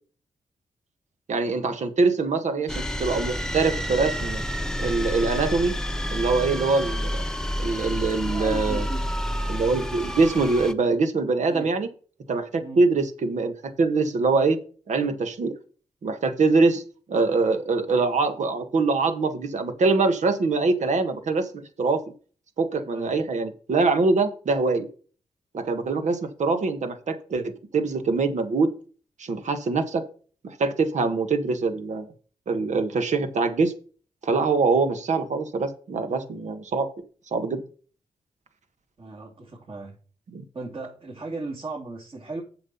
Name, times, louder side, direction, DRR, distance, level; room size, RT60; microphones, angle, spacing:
voice 1, 1.3-4.4 4.8-5.7 6.1-7.2 7.6-8.9 9.5-11.9 12.3-14.6 14.9-15.5 16.0-16.8 17.1-21.5 21.8-22.0 22.6-24.9 25.5-28.7 29.2-30.0 30.4-32.1 32.5-33.7 34.2-36.9 37.3-37.6 40.3-40.4, right 3 dB, 70° right, 8 dB, 1.5 m, -23 dB
sound 1, 2.7-10.7, equal, 5° left, 1.0 m, -29 dB
voice 2, 8.2-9.1 11.4-11.7 12.6-12.8 22.9-23.1 39.0-40.0 40.5-42.4, right 3 dB, 45° right, -2 dB, 2.8 m, -36 dB
7.7 x 6.3 x 5.5 m, 0.40 s
supercardioid pair, 50°, 13 cm